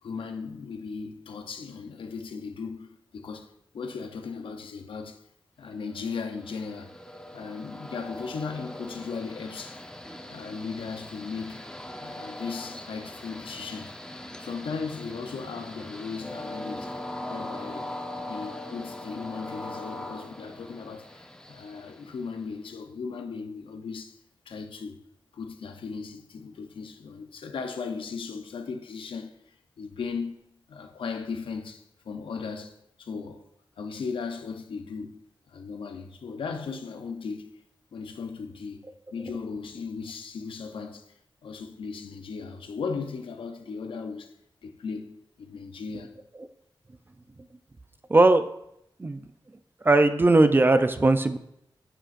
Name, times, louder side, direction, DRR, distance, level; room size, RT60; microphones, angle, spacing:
voice 1, 0.0-5.2 5.6-6.9 7.3-9.8 10.3-11.7 12.0-14.0 14.4-17.0 17.3-17.9 18.3-24.2 24.5-25.0 25.3-33.4 33.8-35.2 35.5-37.5 37.9-38.8 39.1-44.3 44.6-46.1, left 5 dB, 90° left, 0.7 m, -37 dB
Train, 5.9-22.6, left 1 dB, 10° left, 0.8 m, -41 dB
voice 2, 48.1-48.4 49.0-49.2 49.8-51.4, right 2 dB, 25° right, 0.5 m, -19 dB
9.8 x 7.6 x 2.6 m
wide cardioid pair, 100°, 9 cm